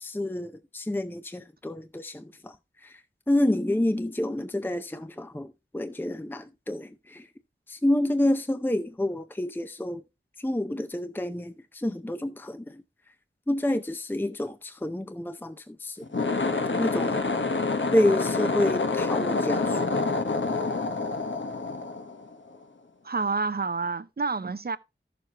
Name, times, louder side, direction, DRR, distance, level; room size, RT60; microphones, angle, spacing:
voice 1, 0.0-2.5 2.8-3.0 3.3-7.3 7.7-10.0 10.4-12.8 13.5-16.1 16.8-17.2 17.9-19.8, left 1 dB, 10° left, 0.6 m, -28 dB
sound 1, 16.0-22.5, left 3 dB, 70° left, 1.1 m, -27 dB
voice 2, 23.0-24.8, right 4 dB, 50° right, 0.6 m, -28 dB
13.5 x 6.9 x 2.9 m
wide cardioid pair, 45°, 20 cm